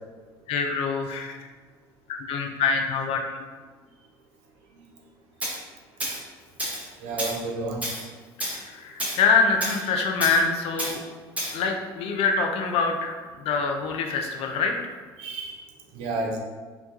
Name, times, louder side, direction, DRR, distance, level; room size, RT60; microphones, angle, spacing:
voice 1, 0.5-1.5 2.1-3.4 8.5-11.0 11.5-14.9, left 4 dB, 55° left, 3 dB, 0.4 m, -25 dB
Tools, 5.4-5.6 6.0-6.2 6.6-6.9 7.2-7.4 7.8-8.0 8.4-8.6 9.0-9.2 9.6-9.8 10.2-10.4 10.8-11.0 11.4-11.6, equal, 10° right, 0.7 m, -30 dB
voice 2, 7.0-7.8 15.2-15.6 15.9-16.4, right 2 dB, 60° right, 0 dB, 0.5 m, -31 dB
2.2 x 2.2 x 2.7 m, 1.4 s
hypercardioid pair, 70°, 12 cm